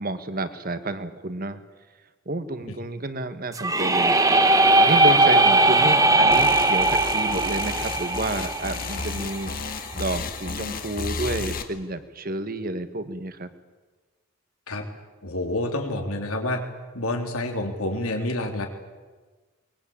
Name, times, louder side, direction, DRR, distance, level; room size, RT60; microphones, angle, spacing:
voice 1, 0.0-1.6 2.2-4.2 4.8-9.5 9.9-13.5, right 2 dB, 40° right, 11 dB, 1.5 m, -30 dB
sound 1, 3.5-9.4, right 2 dB, 15° right, 1.2 m, -19 dB
sound 2, 6.3-11.6, left 4 dB, 40° left, 1.9 m, -33 dB
voice 2, 15.2-16.6 16.9-18.7, left 1 dB, 85° left, 3 dB, 3.5 m, -28 dB
23.0 x 21.5 x 8.8 m, 1.3 s
head